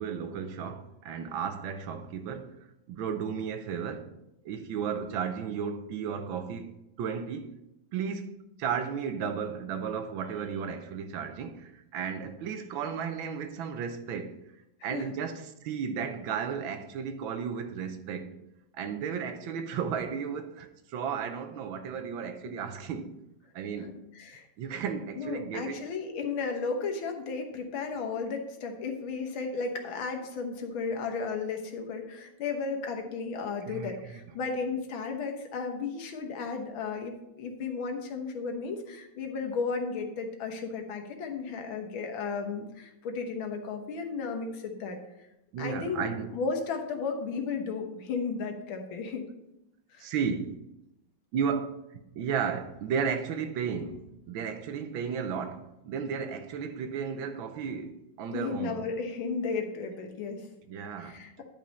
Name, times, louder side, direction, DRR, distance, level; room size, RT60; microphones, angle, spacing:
voice 1, 0.0-2.6 2.9-4.1 4.4-7.5 7.9-14.4 14.8-18.4 18.7-23.2 23.5-24.0 24.6-25.8 33.7-34.2 45.5-46.3 50.0-50.6 51.3-51.7 52.2-58.9 60.7-61.1, right 6 dB, 80° right, 1.5 m, -34 dB
voice 2, 24.1-24.5 25.2-45.0 45.6-46.1 46.3-49.2 49.9-50.0 58.3-60.5, left 4 dB, 85° left, 1.9 m, -34 dB
10.5 x 5.3 x 4.1 m
omnidirectional pair, 2.2 m